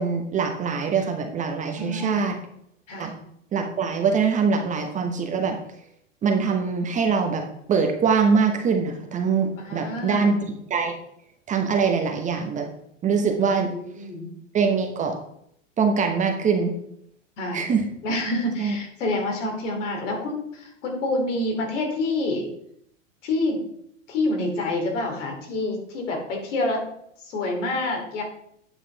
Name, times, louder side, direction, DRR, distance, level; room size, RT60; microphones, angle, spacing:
voice 1, 0.0-2.4 3.0-3.1 3.5-5.6 6.2-10.4 10.7-10.9 11.5-12.7 13.0-13.7 14.5-15.2 15.8-16.7 17.5-17.8 18.6-18.8, right 5 dB, 20° right, 4 dB, 1.0 m, -23 dB
voice 2, 1.8-2.3 2.9-3.2 9.6-10.3 13.4-14.3 17.4-17.6 18.0-22.5 23.2-23.6 24.1-26.8 27.2-28.2, left 2 dB, 65° left, 1 dB, 3.3 m, -27 dB
9.2 x 5.9 x 4.0 m, 0.70 s
hypercardioid pair, 130°, 39 cm